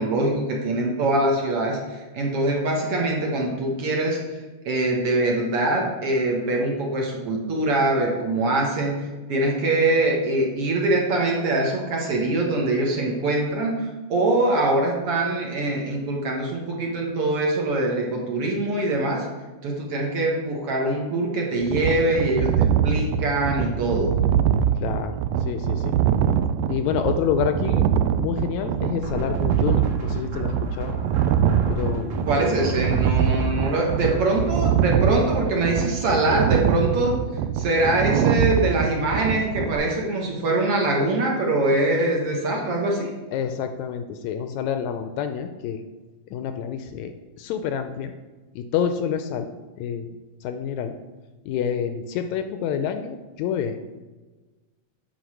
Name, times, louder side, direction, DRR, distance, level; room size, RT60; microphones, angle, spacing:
voice 1, 0.0-4.2 4.7-9.0 9.3-19.3 19.6-24.1 32.3-37.2 37.6-43.1, right 2 dB, 55° right, -1 dB, 1.9 m, -23 dB
sound 1, 21.6-39.8, right 9 dB, 85° right, 1.5 m, -23 dB
voice 2, 24.7-25.9 26.7-27.8 28.2-31.0 31.7-32.3 43.3-45.8 46.3-47.1 47.4-48.1 48.5-49.5 49.8-50.1 50.4-50.9 51.4-53.8, left 8 dB, 80° left, 8 dB, 1.8 m, -28 dB
sound 2, 29.0-34.2, left 1 dB, 40° right, 1.9 m, -35 dB
9.2 x 4.6 x 6.1 m, 1.2 s
omnidirectional pair, 3.5 m